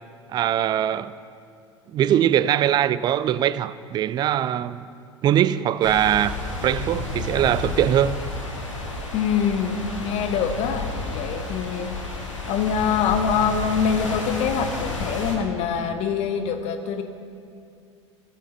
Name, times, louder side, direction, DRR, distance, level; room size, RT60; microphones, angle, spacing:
voice 1, 0.3-1.1 1.9-4.9 5.2-6.3 6.6-8.2, right 11 dB, 30° right, 0.3 m, -21 dB
sound 1, 5.8-15.4, left 2 dB, 90° left, 1.7 m, -31 dB
voice 2, 9.1-11.9 12.5-17.0, left 7 dB, 45° left, 0.8 m, -24 dB
15.5 x 7.3 x 4.3 m
figure-of-eight pair, 80°, 16 cm